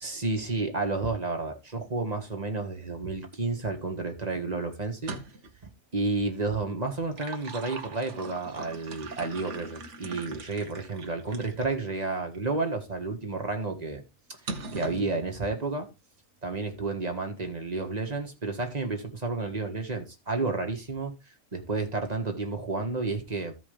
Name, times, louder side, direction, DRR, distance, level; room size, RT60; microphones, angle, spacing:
voice 1, 0.0-5.1 5.9-14.0 14.7-15.9 16.4-21.1 21.5-23.5, right 3 dB, 30° right, 1.8 m, -31 dB
sound 1, 5.0-5.6 6.9-11.7 12.3-12.5 14.5-15.1, right 3 dB, 60° right, 1.5 m, -41 dB
15.0 x 5.1 x 3.4 m
omnidirectional pair, 1.4 m